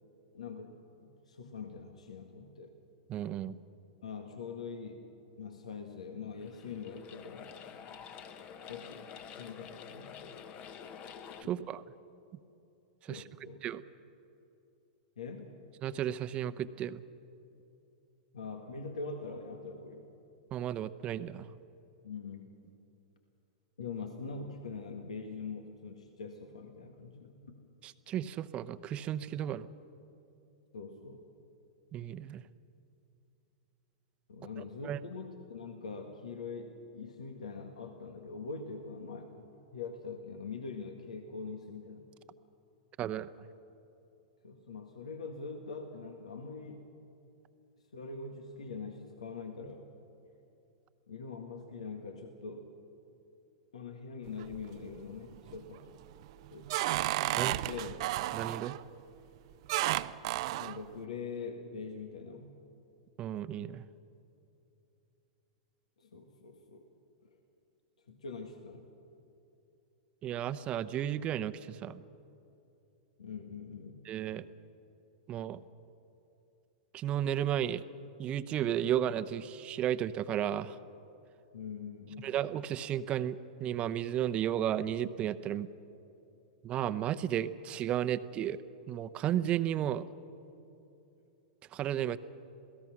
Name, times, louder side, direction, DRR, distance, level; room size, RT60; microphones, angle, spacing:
voice 1, 0.3-0.7 1.0-2.7 4.0-5.0 5.4-7.5 8.7-9.1 9.4-10.4 11.4-11.6 13.1-13.6 15.2-15.5 18.3-20.1 22.0-22.6 23.8-27.5 30.7-31.2 34.3-42.1 44.4-46.8 47.9-49.8 51.1-52.6 53.7-55.9 56.5-56.7 57.1-57.9 60.6-62.6 66.0-66.9 67.2-67.3 68.1-68.9 73.2-74.0 81.5-82.3, left 4 dB, 80° left, 4 dB, 1.8 m, -43 dB
voice 2, 3.1-3.6 11.5-11.8 13.0-13.2 13.6-13.8 15.8-17.0 20.5-21.5 27.8-29.7 31.9-32.4 34.6-35.0 43.0-43.3 57.4-57.5 58.3-58.7 63.2-63.8 70.2-72.0 74.1-74.4 75.3-75.6 76.9-77.8 78.2-80.7 82.2-85.7 86.6-88.6 88.9-90.1 91.7-92.2, right 11 dB, 35° right, 13 dB, 0.8 m, -33 dB
sound 1, 6.3-11.4, left 7 dB, 35° left, 1.3 m, -48 dB
sound 2, 54.3-54.9 55.3-55.8 56.2-58.8 59.7-60.8, right 16 dB, 55° right, 0.6 m, -32 dB
27.5 x 17.5 x 6.1 m, 2.8 s
hypercardioid pair, 110°, 4 cm